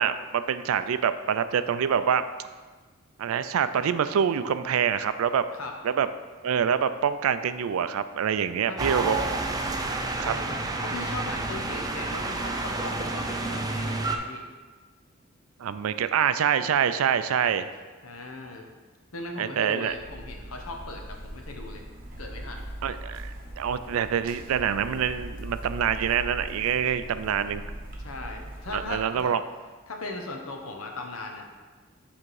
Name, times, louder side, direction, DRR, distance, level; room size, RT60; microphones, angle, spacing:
voice 1, 0.0-2.2 3.2-5.4 5.8-6.1 6.4-9.2 10.2-10.3 15.6-17.7 19.4-19.9 22.8-27.7 28.7-29.4, right 8 dB, 80° right, 12 dB, 0.4 m, -26 dB
sound 1, 8.8-14.2, right 2 dB, 20° right, 0.4 m, -30 dB
voice 2, 10.2-14.4 18.0-18.7 19.1-21.9 22.2-22.7 27.6-27.7 28.0-29.3 29.9-31.5, left 2 dB, 85° left, 3 dB, 0.9 m, -38 dB
sound 2, 19.9-29.2, right 1 dB, 40° right, 1.0 m, -40 dB
7.5 x 3.6 x 4.8 m, 1.4 s
head